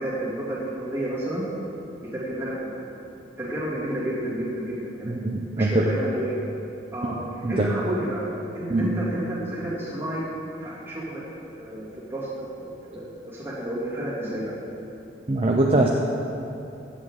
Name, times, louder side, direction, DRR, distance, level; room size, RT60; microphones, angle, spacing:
voice 1, 0.0-1.4 2.0-2.8 3.4-5.2 5.5-6.4 6.9-10.2 10.6-11.2 11.6-14.5, right 1 dB, 10° right, -9 dB, 2.6 m, -31 dB
voice 2, 5.0-5.8 7.4-7.7 8.7-8.9 15.3-15.9, right 2 dB, 30° right, 0 dB, 0.6 m, -22 dB
14.5 x 8.2 x 3.8 m, 2.8 s
head